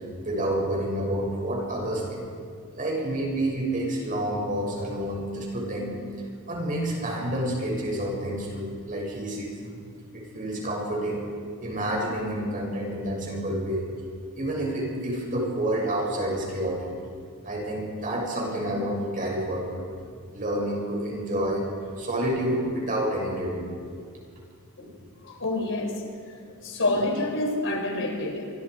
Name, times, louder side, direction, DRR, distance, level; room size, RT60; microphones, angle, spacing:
voice 1, 0.2-2.3 2.7-5.9 6.5-9.8 10.1-11.3 11.6-13.8 14.3-16.9 17.4-19.8 20.3-21.6 22.0-23.6 23.9-24.0 24.8-24.9 27.0-27.1, right 1 dB, 40° right, -2 dB, 6.9 m, -29 dB
voice 2, 25.2-26.0 26.6-28.5, left 2 dB, 60° left, 2 dB, 4.3 m, -27 dB
28.5 x 25.0 x 5.0 m, 2.2 s
head